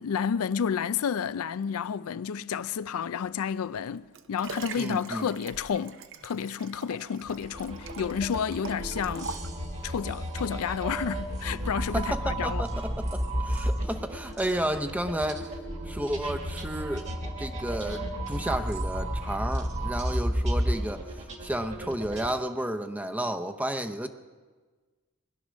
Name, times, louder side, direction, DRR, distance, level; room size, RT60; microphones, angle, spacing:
voice 1, 0.0-9.3 9.8-12.7, left 7 dB, 80° left, 0.4 m, -31 dB
Liquid, 3.7-10.0 10.6-10.7, right 5 dB, 60° right, 0.8 m, -43 dB
voice 2, 4.8-5.3 11.9-15.5 15.9-17.1 17.4-24.1, right 1 dB, 5° right, 0.7 m, -32 dB
sound 1, 7.2-22.3, equal, 30° right, 1.5 m, -32 dB
21.0 x 11.0 x 6.3 m
head